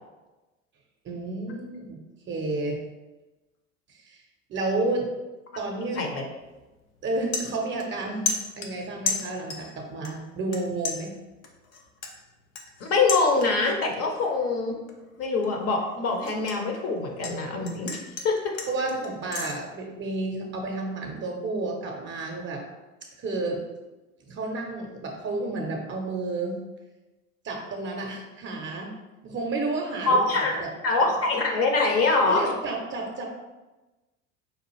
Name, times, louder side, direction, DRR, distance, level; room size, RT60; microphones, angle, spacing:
voice 1, 1.0-2.0 2.3-2.8 3.9-4.2 4.5-5.1 5.6-6.0 7.0-11.1 18.7-22.6 23.2-23.6 24.2-26.6 27.4-28.9 29.2-30.7 31.0-31.1 32.2-33.3, right 2 dB, 30° right, 2 dB, 0.7 m, -31 dB
Stirring Tea, 6.4-6.6 7.0-8.0 8.3-9.7 10.0-10.6 10.8-13.8 14.1-14.5 14.9-17.4 17.6-19.5, left 5 dB, 75° left, 0.7 m, -33 dB
voice 2, 12.9-14.8 15.2-18.5 30.1-30.5 30.8-32.5, left 3 dB, 35° left, 2 dB, 0.7 m, -24 dB
5.0 x 2.3 x 3.1 m, 1.1 s
figure-of-eight pair, 70°, 42 cm